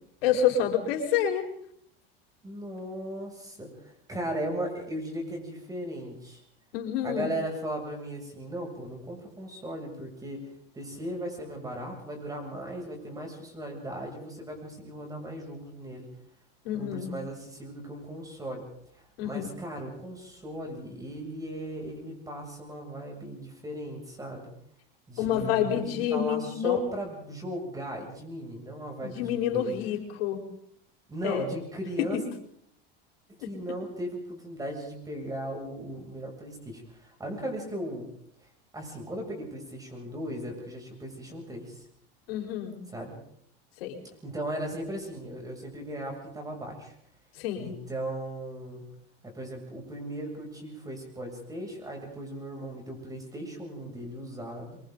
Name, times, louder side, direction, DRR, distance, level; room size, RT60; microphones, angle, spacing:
voice 1, 0.2-1.5 6.7-7.3 16.6-17.1 19.2-19.5 25.2-26.8 29.0-30.4 31.2-31.5 32.0-32.2 33.4-33.5 42.3-42.8 43.8-44.0 47.4-47.7, left 9 dB, 85° left, 3 dB, 4.6 m, -28 dB
voice 2, 2.4-6.4 7.0-10.5 10.7-16.1 16.7-18.7 18.9-24.5 25.1-29.7 31.1-32.2 33.3-38.1 38.4-38.5 38.7-41.8 42.9-43.2 44.2-46.9 47.5-48.9 49.2-54.8, right 1 dB, 10° right, 1 dB, 7.4 m, -37 dB
27.5 x 24.5 x 4.0 m, 0.68 s
supercardioid pair, 130°, 29 cm